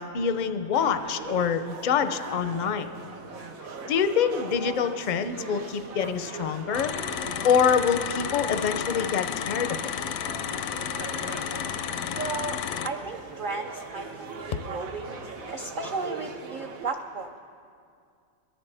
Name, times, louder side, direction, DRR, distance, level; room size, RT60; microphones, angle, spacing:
voice 1, 0.0-2.9 3.9-6.9 7.4-9.9, left 7 dB, 55° left, 10 dB, 0.5 m, -25 dB
sound 1, 0.7-16.8, right 4 dB, 90° right, 1.4 m, -41 dB
sound 2, 6.7-12.9, left 8 dB, 80° left, 1.0 m, -32 dB
voice 2, 12.1-12.6 12.8-17.4, right 3 dB, 55° right, 3 dB, 0.6 m, -34 dB
22.0 x 13.5 x 3.4 m, 2.3 s
omnidirectional pair, 1.4 m